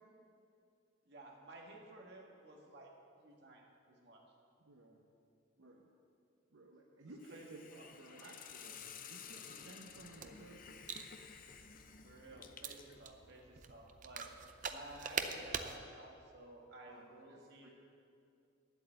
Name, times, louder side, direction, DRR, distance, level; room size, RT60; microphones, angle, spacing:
voice 1, 1.1-2.9 3.2-3.6 3.9-4.2 7.0-8.2 12.0-14.3 14.7-17.7, right 1 dB, 55° right, -1 dB, 1.8 m, -54 dB
voice 2, 4.6-5.0 5.6-5.8 6.5-10.9 16.9-17.7, right 2 dB, 75° right, 0 dB, 0.9 m, -57 dB
Hiss, 7.2-13.0, left 7 dB, 45° left, 0.6 m, -53 dB
sound 1, 9.9-15.8, right 6 dB, 40° right, 0.5 m, -45 dB
9.8 x 8.2 x 8.0 m, 2.5 s
head